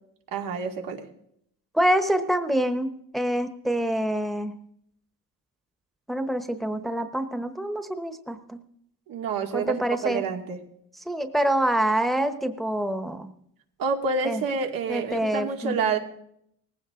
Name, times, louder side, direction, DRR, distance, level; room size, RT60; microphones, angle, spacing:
voice 1, 0.3-1.0 9.1-10.6 13.8-16.0, right 5 dB, 80° right, 2 dB, 2.5 m, -28 dB
voice 2, 1.7-4.6 6.1-8.6 9.5-10.2 11.1-13.3 14.2-14.4 14.9-15.8, right 1 dB, ahead, 8 dB, 1.1 m, -26 dB
19.0 x 15.5 x 3.8 m, 0.73 s
cardioid pair, 100°, 34 cm